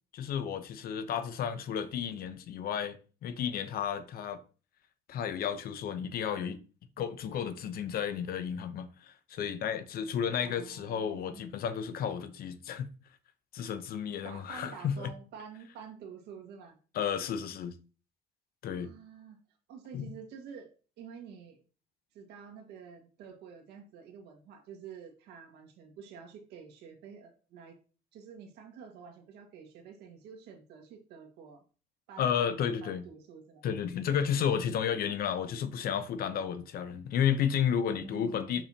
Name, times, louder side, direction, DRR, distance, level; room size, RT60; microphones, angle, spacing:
voice 1, 0.1-3.0 3.2-4.4 5.1-6.6 7.0-12.9 13.5-15.1 16.9-17.8 18.6-18.9 19.9-20.1 32.2-33.0 33.6-38.6, left 8 dB, 60° left, 0.9 m, -32 dB
voice 2, 10.4-11.6 14.2-16.8 18.7-19.4 19.7-20.7 21.0-21.6 22.1-27.7 28.1-31.6 32.1-33.6 34.3-34.5 34.8-35.2 37.9-38.6, right 6 dB, 80° right, 1.8 m, -49 dB
6.3 x 6.0 x 2.9 m
cardioid pair, 110°, 17 cm